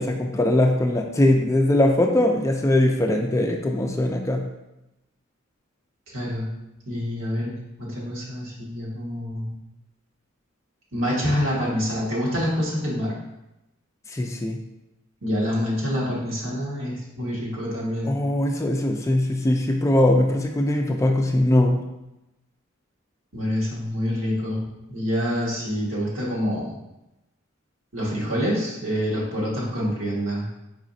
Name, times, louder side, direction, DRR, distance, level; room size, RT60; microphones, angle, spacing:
voice 1, 0.0-4.4 14.1-14.6 18.0-21.8, left 1 dB, 15° left, 3 dB, 0.3 m, -21 dB
voice 2, 6.1-6.5 6.8-7.5 7.8-9.5 10.9-13.1 15.2-18.2 23.3-24.6 24.9-26.7 27.9-30.4, equal, 75° right, -6 dB, 1.6 m, -26 dB
4.8 x 4.1 x 2.6 m, 0.93 s
head